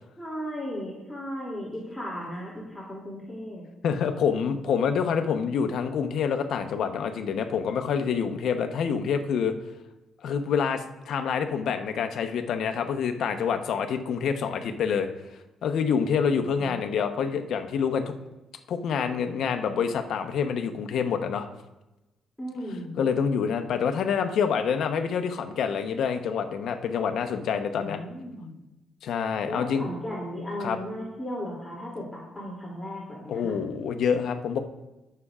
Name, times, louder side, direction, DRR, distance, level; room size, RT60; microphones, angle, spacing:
voice 1, 0.2-3.6 22.4-23.0 27.8-28.6 29.4-33.5, equal, 10° left, -6 dB, 2.7 m, -36 dB
voice 2, 3.8-9.5 10.2-15.1 15.6-18.1 18.7-21.5 23.0-28.0 29.0-29.9 30.6-30.8 33.3-34.6, left 6 dB, 70° left, 7 dB, 0.9 m, -27 dB
17.0 x 6.8 x 2.4 m, 1.0 s
cardioid pair, 90°, 0 cm